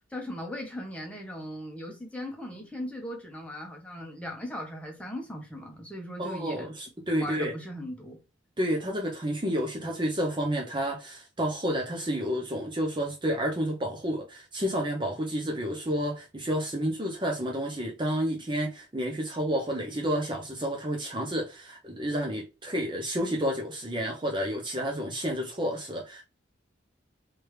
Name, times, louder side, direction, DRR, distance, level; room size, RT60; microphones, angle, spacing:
voice 1, 0.1-6.7 7.1-8.2, equal, 5° left, 1.0 m, -38 dB
voice 2, 6.2-7.5 8.6-26.2, equal, 25° right, 0.6 m, -30 dB
3.3 x 3.3 x 3.1 m
head